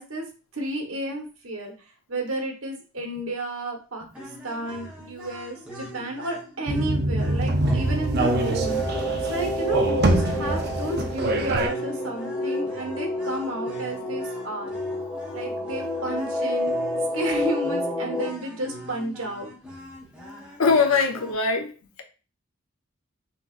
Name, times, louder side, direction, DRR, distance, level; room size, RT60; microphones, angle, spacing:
voice 1, 0.0-1.7 2.1-14.7 15.3-16.7 17.1-19.5, right 1 dB, 85° right, 1.3 m, -32 dB
sound 1, 4.1-21.3, equal, 5° right, 1.2 m, -42 dB
sound 2, 6.7-11.7, right 2 dB, 50° right, 0.6 m, -24 dB
sound 3, 7.6-18.3, left 1 dB, 35° left, 1.4 m, -29 dB
voice 2, 20.6-21.7, left 4 dB, 90° left, 0.8 m, -21 dB
5.7 x 3.0 x 2.5 m
head